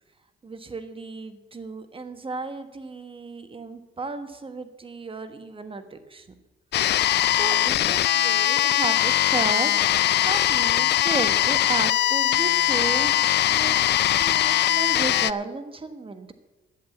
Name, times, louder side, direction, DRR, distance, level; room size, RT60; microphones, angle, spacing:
voice 1, 0.4-6.3 7.0-13.1 13.5-16.3, right 3 dB, 25° right, 9 dB, 1.4 m, -34 dB
sound 1, 6.7-15.3, left 13 dB, 60° left, 0.4 m, -21 dB
11.0 x 8.0 x 8.4 m, 1.2 s
cardioid pair, 90°, 20 cm